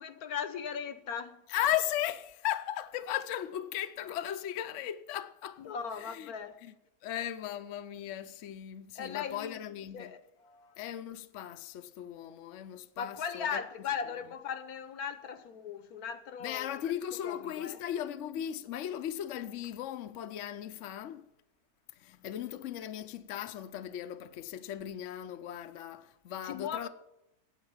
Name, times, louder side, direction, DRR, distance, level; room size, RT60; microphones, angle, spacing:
voice 1, 0.0-1.4 5.6-6.6 9.0-9.6 9.9-10.7 13.0-16.9 17.2-17.8 22.1-22.2 26.4-26.9, left 7 dB, 75° left, 1.4 m, -38 dB
voice 2, 1.5-5.6 6.0-6.3 6.6-6.7 7.0-10.2 10.8-13.6 16.4-21.3 22.0-26.9, left 11 dB, 60° left, 0.9 m, -37 dB
9.5 x 8.3 x 8.7 m
omnidirectional pair, 1.6 m